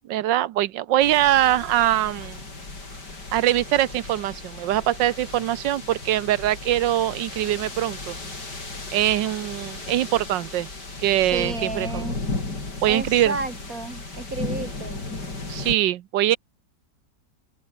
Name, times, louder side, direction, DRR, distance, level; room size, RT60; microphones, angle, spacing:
voice 1, 0.1-2.4 3.3-8.2 8.9-10.7 11.0-12.1 12.8-13.4 15.5-16.4, right 13 dB, 85° right, 1.5 m, -22 dB
sound 1, 1.0-15.7, left 3 dB, 65° left, 5.8 m, -35 dB
voice 2, 11.3-12.2 12.9-15.1, right 3 dB, 50° right, 3.6 m, -32 dB
open air
omnidirectional pair, 1.9 m